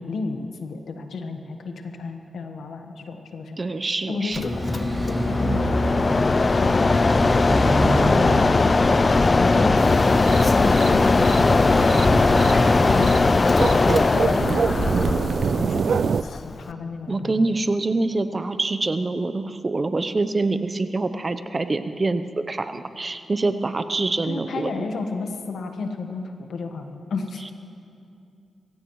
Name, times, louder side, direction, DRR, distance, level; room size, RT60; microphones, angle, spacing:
voice 1, 0.0-3.6 4.1-5.8 6.1-7.1 7.8-8.9 9.3-11.8 12.8-14.6 15.2-17.5 24.2-27.5, left 4 dB, 80° left, 5 dB, 1.3 m, -33 dB
voice 2, 3.6-4.5 17.1-24.7, right 3 dB, 40° right, 11 dB, 0.8 m, -25 dB
Mechanisms, 4.3-16.7, left 3 dB, 40° left, 0.4 m, -19 dB
sound 1, 4.4-13.0, equal, 5° right, 4.8 m, -27 dB
sound 2, 9.8-16.2, right 6 dB, 65° right, 0.3 m, -27 dB
24.5 x 16.0 x 3.2 m, 2.5 s
cardioid pair, 55°, 0 cm